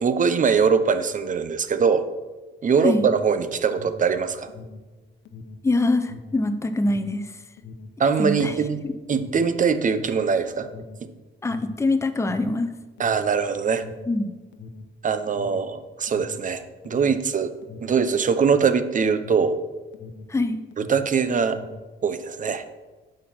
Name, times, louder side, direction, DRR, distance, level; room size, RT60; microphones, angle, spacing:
voice 1, 0.0-2.1 2.6-4.5 8.0-8.8 9.1-10.7 11.0-11.1 13.0-13.8 15.0-17.5 17.8-19.6 20.8-21.6 22.0-22.6, right 6 dB, 40° right, 11 dB, 0.8 m, -22 dB
Alarm, 2.6-20.4 20.6-21.9, left 4 dB, 65° left, 0.9 m, -43 dB
voice 2, 5.6-7.3 8.2-8.6 8.8-8.9 11.4-12.7 14.1-14.3 20.3-20.6, left 2 dB, 15° left, 7 dB, 0.7 m, -23 dB
8.4 x 5.2 x 5.9 m, 1.2 s
cardioid pair, 90°, 20 cm